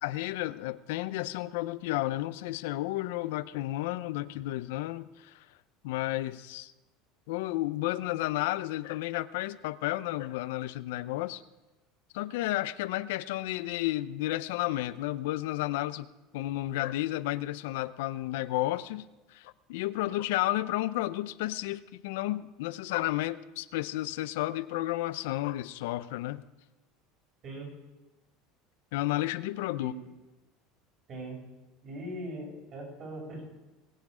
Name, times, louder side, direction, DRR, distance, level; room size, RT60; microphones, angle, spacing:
voice 1, 0.0-5.5 5.8-6.7 7.3-11.4 12.1-26.4 28.9-29.9, left 16 dB, 85° left, 14 dB, 0.5 m, -32 dB
voice 2, 31.8-33.4, right 1 dB, 40° right, -1 dB, 6.2 m, -40 dB
21.0 x 8.5 x 5.0 m, 1.1 s
supercardioid pair, 135°, 0 cm